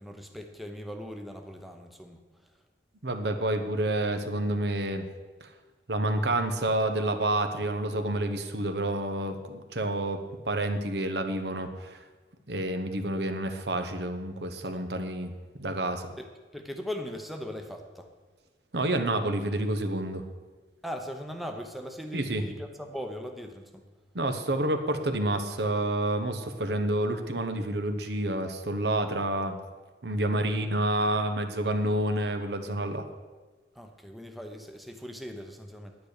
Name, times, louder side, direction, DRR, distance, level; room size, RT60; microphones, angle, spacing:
voice 1, 0.0-2.2 14.7-14.8 16.2-16.3 16.5-18.1 20.8-23.8 33.7-36.0, equal, ahead, 4 dB, 0.8 m, -39 dB
voice 2, 3.0-5.1 5.4-5.5 5.9-12.0 12.5-16.2 18.7-20.2 22.1-22.4 24.1-29.6 30.0-33.1, right 1 dB, 65° right, 7 dB, 1.1 m, -29 dB
10.0 x 9.4 x 6.6 m, 1.3 s
head